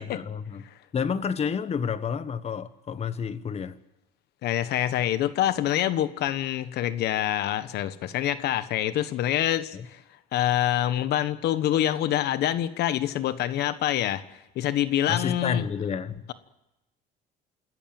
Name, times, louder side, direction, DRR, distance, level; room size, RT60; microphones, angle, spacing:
voice 1, 0.0-0.6 0.9-3.8 9.7-9.8 15.1-16.2, left 6 dB, 40° left, 1.3 m, -30 dB
voice 2, 4.4-10.0 10.3-14.2 14.5-15.6, left 12 dB, 75° left, 1.3 m, -26 dB
27.0 x 14.0 x 8.9 m
cardioid pair, 110°, 17 cm